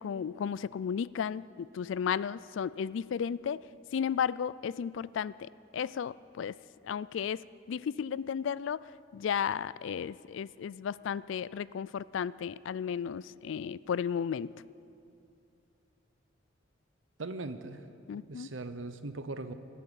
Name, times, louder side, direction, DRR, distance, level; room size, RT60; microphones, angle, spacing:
voice 1, 0.0-3.6 3.9-6.5 6.8-7.4 7.7-8.8 9.1-14.5 18.1-18.5, left 7 dB, 75° left, 20 dB, 0.3 m, -34 dB
voice 2, 17.2-17.8 18.3-19.5, right 2 dB, 85° right, 11 dB, 0.9 m, -39 dB
23.5 x 8.5 x 7.0 m, 2.6 s
head